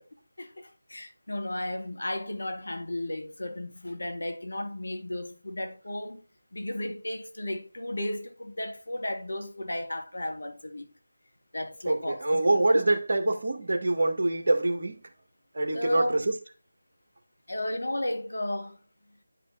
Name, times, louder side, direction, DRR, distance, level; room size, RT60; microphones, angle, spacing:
voice 1, 0.4-6.2 6.5-10.9 11.5-12.7 15.7-16.2 17.5-18.8, left 1 dB, 55° left, 1.9 m, -34 dB
voice 2, 11.9-15.0 15.5-16.4, right 2 dB, 45° right, 1.8 m, -25 dB
11.0 x 5.3 x 4.0 m
figure-of-eight pair, 160°, 0 cm